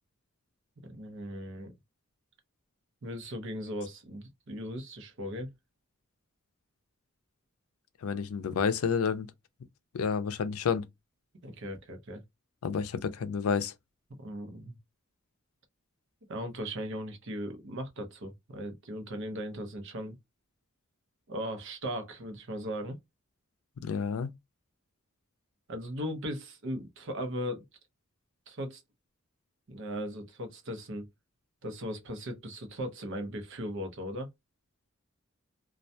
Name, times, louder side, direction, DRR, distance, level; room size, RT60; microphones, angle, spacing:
voice 1, 0.8-1.7 3.0-5.5 11.4-12.2 14.2-14.8 16.3-20.2 21.3-23.0 25.7-27.6 28.5-28.8 29.7-31.1 31.6-34.3, equal, 60° right, 0.7 m, -38 dB
voice 2, 8.0-9.3 9.9-10.8 12.6-13.7 23.8-24.3, left 6 dB, 90° left, 0.4 m, -30 dB
2.3 x 2.1 x 2.6 m
head